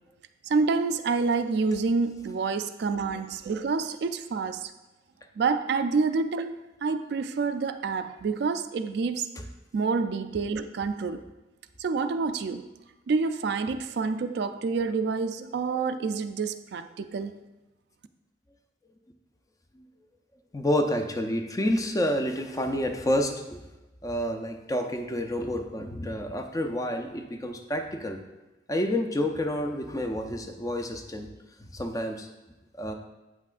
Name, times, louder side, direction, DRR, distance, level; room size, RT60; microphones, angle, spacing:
voice 1, 0.4-4.7 5.4-9.3 9.7-11.2 11.8-12.7 13.1-17.4, right 4 dB, 60° right, 10 dB, 0.3 m, -28 dB
voice 2, 20.5-23.6 24.0-28.2 28.7-31.3 31.6-32.3 32.8-32.9, left 1 dB, 20° left, 5 dB, 0.4 m, -29 dB
8.1 x 5.8 x 2.5 m, 1.1 s
head